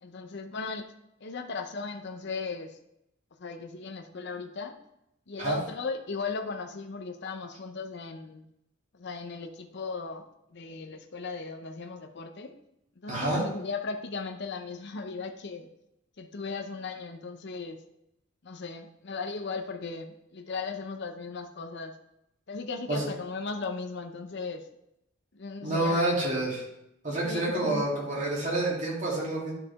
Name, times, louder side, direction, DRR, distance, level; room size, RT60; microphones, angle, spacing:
voice 1, 0.0-0.9 1.2-2.8 3.4-4.8 5.3-8.4 8.9-10.3 10.5-12.5 13.0-15.7 16.2-17.8 18.4-22.0 22.5-24.7 25.3-26.5 27.2-27.9, left 4 dB, 60° left, 5 dB, 0.7 m, -37 dB
voice 2, 13.1-13.4 22.9-23.1 25.6-26.6 27.0-29.5, right 1 dB, 40° right, -5 dB, 2.9 m, -28 dB
11.0 x 4.9 x 3.6 m, 0.82 s
head